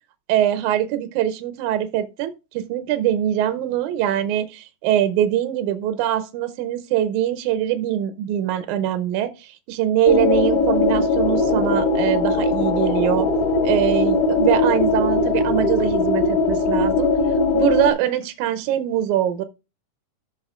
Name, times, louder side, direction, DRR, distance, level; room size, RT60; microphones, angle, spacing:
voice 1, 0.3-13.3 13.6-17.1 17.5-19.4, right 11 dB, 75° right, 1.9 m, -23 dB
sound 1, 10.1-17.9, left 3 dB, 40° left, 1.8 m, -20 dB
14.5 x 6.0 x 2.4 m
omnidirectional pair, 4.0 m